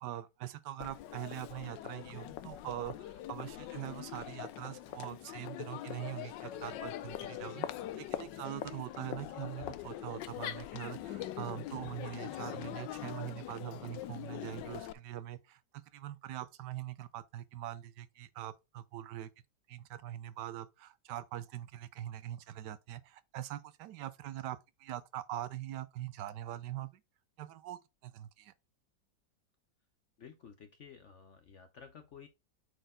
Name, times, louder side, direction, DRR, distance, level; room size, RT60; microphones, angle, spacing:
voice 1, 0.0-7.7 8.0-15.6 15.9-19.3 19.7-27.0 27.4-28.5, right 13 dB, 75° right, 1.2 m, -43 dB
Crowd, 0.8-14.9, left 12 dB, 80° left, 1.3 m, -43 dB
voice 2, 30.2-32.3, left 7 dB, 60° left, 0.8 m, -53 dB
7.9 x 4.4 x 3.7 m
omnidirectional pair, 1.9 m